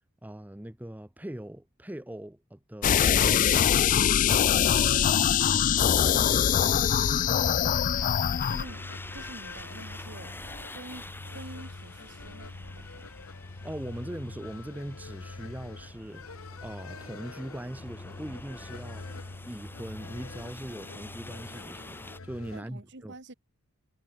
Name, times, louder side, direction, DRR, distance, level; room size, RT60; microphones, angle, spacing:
voice 1, 0.2-3.8 7.6-7.9 13.6-16.3 16.6-19.1 19.5-23.1, right 1 dB, 5° right, 0.6 m, -40 dB
sound 1, 2.8-8.6, left 9 dB, 35° left, 0.3 m, -23 dB
sound 2, 3.2-22.6, left 3 dB, 70° left, 1.1 m, -44 dB
voice 2, 4.9-7.2 8.5-8.9 9.1-10.3 10.6-13.1 22.5-23.3, right 2 dB, 55° right, 2.3 m, -47 dB
sound 3, 5.7-22.2, left 2 dB, 10° left, 6.1 m, -47 dB
head